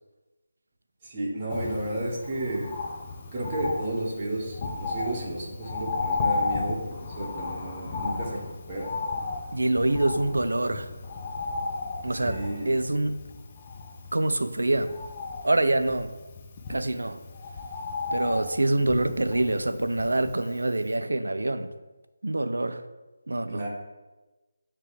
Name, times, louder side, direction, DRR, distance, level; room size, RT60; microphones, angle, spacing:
voice 1, 1.0-2.7 3.3-8.4 8.7-8.9 12.2-12.7 23.5-23.7, right 1 dB, 30° right, -5 dB, 1.7 m, -32 dB
Bird, 1.5-20.6 20.9-21.0, left 4 dB, 25° left, 0.6 m, -34 dB
voice 2, 9.5-10.9 12.0-12.4 12.7-13.2 14.1-14.9 15.4-16.1 16.7-17.2 18.1-21.7 22.2-22.8 23.3-23.6, right 2 dB, 75° right, 10 dB, 0.5 m, -25 dB
9.2 x 3.2 x 3.4 m, 1.1 s
figure-of-eight pair, 160°, 0 cm